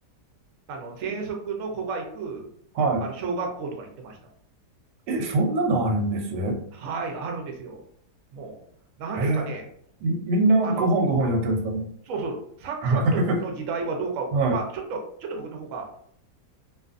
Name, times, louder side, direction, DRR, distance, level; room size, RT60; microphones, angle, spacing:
voice 1, 0.7-2.5 3.0-4.2 6.8-7.8 8.3-8.6 9.0-9.6 10.6-10.9 12.0-16.0, right 4 dB, 65° right, 2 dB, 0.8 m, -32 dB
voice 2, 2.8-3.1 5.1-6.6 9.1-9.6 10.0-11.9 12.8-13.4 14.3-14.6, right 2 dB, 90° right, 3 dB, 1.2 m, -23 dB
2.5 x 2.4 x 2.4 m, 0.65 s
omnidirectional pair, 1.8 m